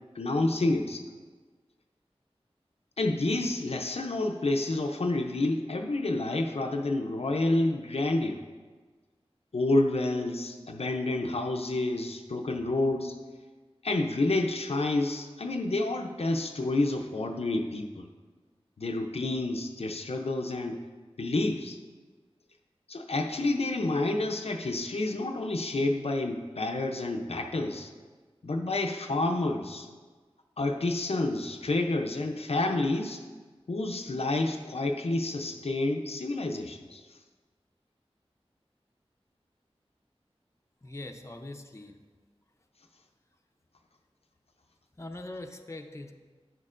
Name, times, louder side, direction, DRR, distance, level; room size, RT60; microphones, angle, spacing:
voice 1, 0.1-1.1 3.0-8.4 9.5-13.2 13.8-18.1 18.8-20.8 21.2-21.8 22.9-27.9 28.4-29.9 30.6-33.2 33.7-37.0, left 2 dB, 70° left, 3 dB, 0.5 m, -29 dB
voice 2, 40.8-42.0 45.0-46.1, left 2 dB, 25° left, 4 dB, 0.6 m, -42 dB
10.5 x 6.5 x 2.5 m, 1.4 s
wide cardioid pair, 50°, 11 cm